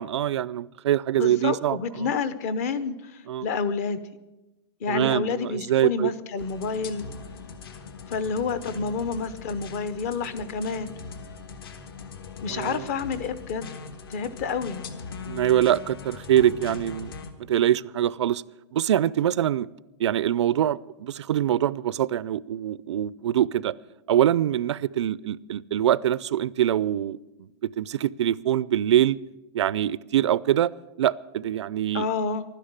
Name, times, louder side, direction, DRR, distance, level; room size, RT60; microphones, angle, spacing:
voice 1, 0.0-2.1 3.3-3.5 4.9-6.1 12.5-12.9 15.3-17.1 17.5-18.4 18.7-19.7 20.0-23.7 24.1-27.5 27.8-29.2 29.5-30.7 31.0-32.1, right 11 dB, 90° right, 21 dB, 0.5 m, -24 dB
voice 2, 1.2-4.0 4.8-7.1 8.1-10.9 12.4-13.7 14.1-14.8 31.9-32.4, left 5 dB, 35° left, 15 dB, 0.7 m, -29 dB
sound 1, 6.4-17.3, left 5 dB, 55° left, 1.4 m, -41 dB
12.0 x 10.0 x 9.6 m, 1.1 s
supercardioid pair, 175°, 14 cm